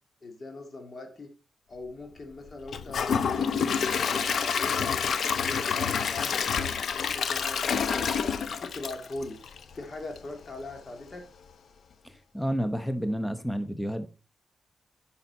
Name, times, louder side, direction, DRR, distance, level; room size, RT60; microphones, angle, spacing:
voice 1, 0.2-1.3 1.7-4.8 5.2-8.1 8.6-9.4 9.7-11.2, left 2 dB, 45° left, 2.0 m, -41 dB
Gurgling / Toilet flush / Trickle dribble, 2.7-9.7 10.2-10.3 10.7-10.8, left 6 dB, 70° left, 0.8 m, -28 dB
voice 2, 12.0-14.1, equal, 5° left, 0.9 m, -30 dB
10.5 x 5.8 x 4.1 m
cardioid pair, 80°, 0 cm